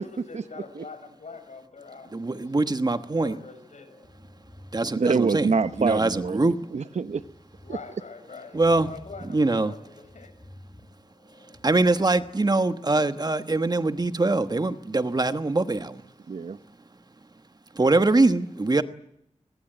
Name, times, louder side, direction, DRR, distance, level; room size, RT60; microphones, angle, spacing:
voice 1, 0.0-2.8 3.2-3.9 7.6-10.3, left 4 dB, 80° left, 8 dB, 6.4 m, -44 dB
voice 2, 2.1-3.4 4.7-5.5 5.8-6.6 8.5-8.9 9.3-9.7 11.6-16.0 17.7-18.8, right 2 dB, 35° right, 10 dB, 1.2 m, -23 dB
sound 1, 3.7-12.3, left 1 dB, 30° left, 6.3 m, -51 dB
voice 3, 5.0-7.2 7.7-7.8 16.3-16.6, right 5 dB, 70° right, 13 dB, 1.0 m, -26 dB
23.0 x 21.0 x 9.1 m, 0.77 s
wide cardioid pair, 100°, 12 cm